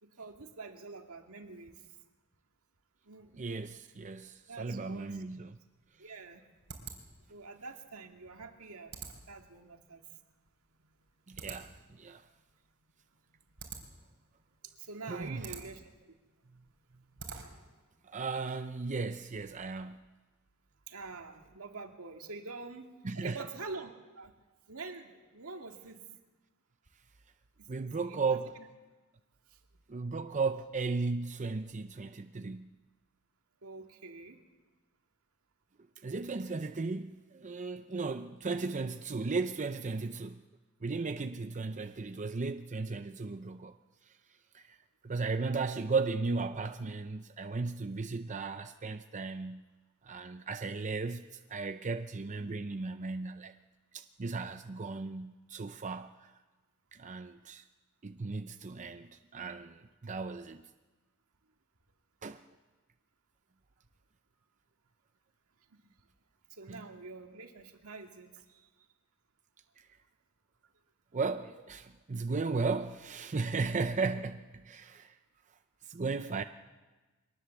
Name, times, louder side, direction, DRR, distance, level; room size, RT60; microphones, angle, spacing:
voice 1, 0.0-1.8 3.0-3.4 4.5-5.2 6.0-6.4 7.3-10.0 14.6-15.9 20.9-22.9 23.2-24.3 24.7-26.0 27.6-28.7 29.5-29.6 33.6-34.4 65.7-66.0 66.5-68.9, right 3 dB, 80° right, 2.1 m, -46 dB
voice 2, 3.3-5.6 11.3-12.2 15.1-15.5 18.1-20.0 23.0-23.4 27.7-28.6 29.9-32.7 36.0-40.4 40.8-43.7 44.5-44.7 45.0-49.6 50.0-53.5 53.9-56.3 56.9-57.6 58.0-60.6 62.2-62.4 66.7-66.8 71.1-75.1 75.9-76.4, right 4 dB, 35° right, 0.6 m, -35 dB
sound 1, 5.6-17.8, right 5 dB, 60° right, 3.9 m, -50 dB
22.5 x 19.0 x 7.1 m
head